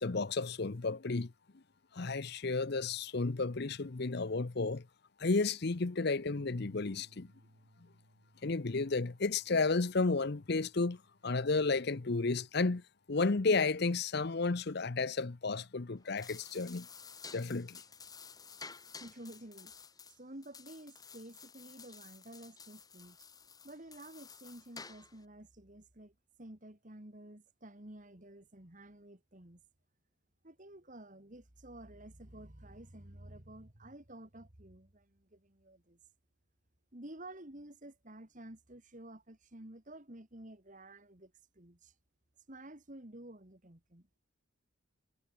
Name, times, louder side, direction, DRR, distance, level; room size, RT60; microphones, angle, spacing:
voice 1, 0.0-1.3 1.9-4.9 5.2-7.3 8.4-12.8 13.1-16.9 17.3-17.8, left 3 dB, 50° left, 0.7 m, -32 dB
Bass guitar, 6.3-12.5, right 1 dB, 70° right, 3.1 m, -65 dB
sound 1, 16.0-25.2, left 5 dB, 20° left, 5.7 m, -52 dB
voice 2, 18.9-19.7 20.1-23.2 23.6-29.6 30.4-36.0 36.9-41.9 42.5-44.1, right 1 dB, 35° right, 2.2 m, -51 dB
head